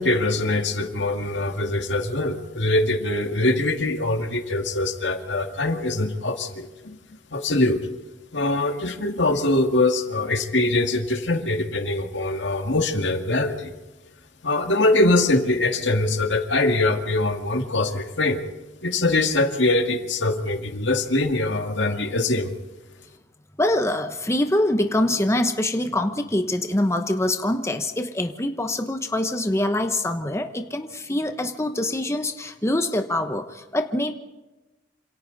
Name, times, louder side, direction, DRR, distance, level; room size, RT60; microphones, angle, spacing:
voice 1, 0.0-7.0 7.3-7.8 8.3-13.7 14.4-18.4 18.8-22.5, left 2 dB, 70° left, 5 dB, 2.2 m, -23 dB
voice 2, 23.6-34.1, left 1 dB, 15° left, 6 dB, 1.0 m, -24 dB
28.0 x 27.0 x 4.1 m, 1.1 s
head